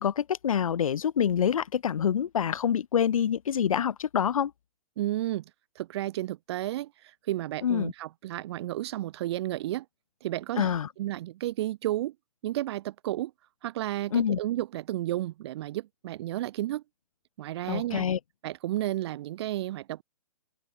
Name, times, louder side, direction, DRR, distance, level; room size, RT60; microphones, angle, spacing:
voice 1, 0.0-4.5 7.6-7.9 10.6-10.9 14.1-14.4 17.7-18.2, left 8 dB, 65° left, 1.4 m, -26 dB
voice 2, 5.0-5.4 5.8-6.9 7.3-9.9 10.2-12.1 12.4-13.3 13.6-16.8 17.4-18.1 18.4-20.0, right 14 dB, 45° right, 3.9 m, -32 dB
open air
hypercardioid pair, 130°, 19 cm